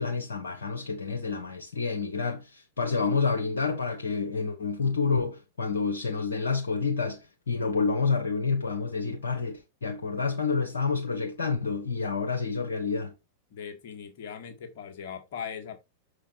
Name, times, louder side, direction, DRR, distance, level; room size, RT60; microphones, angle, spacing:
voice 1, 0.0-13.1, left 4 dB, 75° left, 1.2 m, -29 dB
voice 2, 13.5-15.8, left 7 dB, 55° left, 1.9 m, -39 dB
6.4 x 4.9 x 4.4 m
figure-of-eight pair, 95°, 0 cm